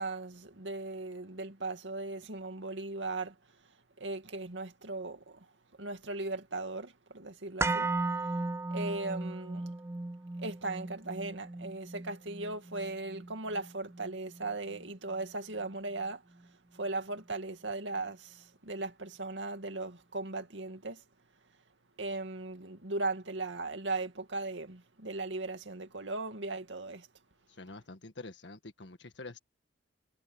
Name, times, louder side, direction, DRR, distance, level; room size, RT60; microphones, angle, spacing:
voice 1, 0.0-8.4 8.7-9.7 10.4-21.0 22.0-27.1, right 2 dB, 85° right, 2.4 m, -38 dB
sound 1, 7.6-15.7 16.0-16.1, right 3 dB, 15° right, 0.4 m, -37 dB
voice 2, 27.6-29.4, left 3 dB, 75° left, 1.7 m, -46 dB
head